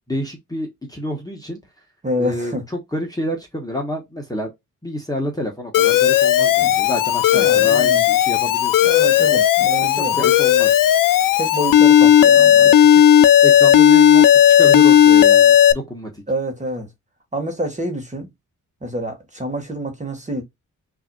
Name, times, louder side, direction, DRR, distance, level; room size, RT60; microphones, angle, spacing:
voice 1, 0.1-1.6 2.2-4.5 4.8-9.4 9.8-10.8 12.6-13.0 13.4-16.2, left 1 dB, 10° left, 1.1 m, -28 dB
voice 2, 2.0-2.6 6.6-6.7 7.3-8.0 8.8-10.3 11.4-12.7 16.3-16.9 17.3-18.3 18.8-20.4, equal, 20° right, 1.4 m, -27 dB
Alarm, 5.7-15.7, left 10 dB, 75° left, 0.5 m, -13 dB
5.6 x 2.7 x 2.2 m
cardioid pair, 95°, 33 cm